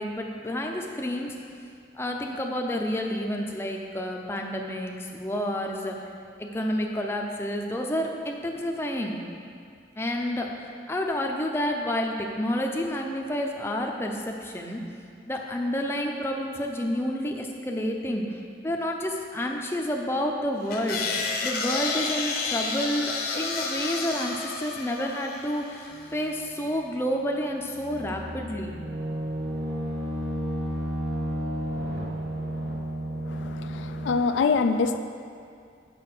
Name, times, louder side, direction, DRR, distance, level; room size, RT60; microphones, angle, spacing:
voice 1, 0.0-1.4 1.9-6.0 6.4-9.2 10.0-14.8 15.3-21.0 21.4-28.7, equal, 15° left, 1 dB, 0.5 m, -29 dB
sound 1, 20.7-26.1, left 4 dB, 55° left, 0.8 m, -31 dB
sound 2, 25.9-26.7 27.6-34.2, equal, 75° right, 1.4 m, -32 dB
voice 2, 33.3-35.0, left 4 dB, 85° left, 8 dB, 0.4 m, -25 dB
6.6 x 5.6 x 6.0 m, 2.3 s
head